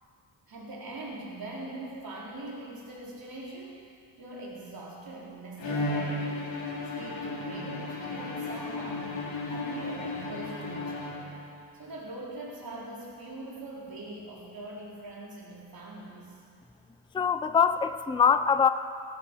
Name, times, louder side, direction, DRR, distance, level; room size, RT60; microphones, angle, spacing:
voice 1, 0.5-3.8 4.2-9.2 9.4-11.4 11.7-16.4, right 2 dB, 50° right, -4 dB, 4.2 m, -42 dB
Bowed string instrument, 5.6-11.6, left 2 dB, 70° left, 3.2 m, -34 dB
voice 2, 17.1-18.7, left 6 dB, 10° left, 11 dB, 0.4 m, -23 dB
16.5 x 11.5 x 6.2 m, 2.5 s
cardioid pair, 80°, 46 cm